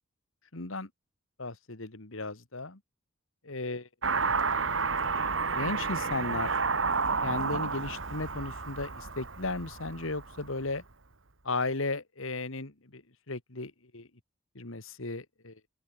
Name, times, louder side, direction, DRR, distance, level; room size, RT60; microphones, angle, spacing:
voice 1, 0.5-0.9 1.4-2.8 3.4-3.9 5.5-6.6 7.2-10.8 11.4-14.1 14.6-15.6, left 3 dB, 70° left, 2.1 m, -35 dB
Car passing by / Accelerating revving vroom, 4.0-10.6, right 4 dB, 65° right, 1.9 m, -31 dB
open air
head